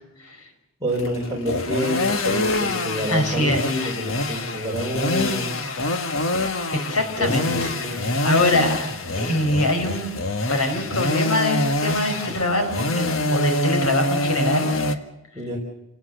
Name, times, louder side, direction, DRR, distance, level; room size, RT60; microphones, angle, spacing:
voice 1, 0.8-5.5 7.2-8.2 15.3-15.6, equal, 15° right, -4 dB, 4.7 m, -28 dB
sound 1, 0.9-15.0, left 2 dB, 65° left, 1.7 m, -25 dB
voice 2, 3.1-3.9 4.3-4.5 6.9-8.8 9.2-10.1 10.5-14.7, left 1 dB, 80° left, 6 dB, 5.3 m, -24 dB
28.5 x 18.5 x 6.7 m, 0.92 s
head